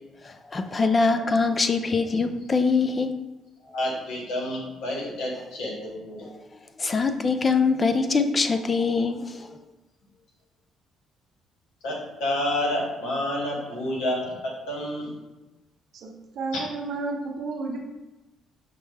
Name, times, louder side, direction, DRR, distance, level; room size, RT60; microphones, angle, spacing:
voice 1, 0.5-3.1 6.8-9.2, left 4 dB, 35° left, 8 dB, 0.4 m, -23 dB
voice 2, 3.6-6.3 11.8-15.2, left 1 dB, 80° left, -2 dB, 1.2 m, -29 dB
voice 3, 15.9-17.8, right 3 dB, 65° right, 1 dB, 0.8 m, -32 dB
5.9 x 2.1 x 3.3 m, 1.1 s
supercardioid pair, 70°, 0 cm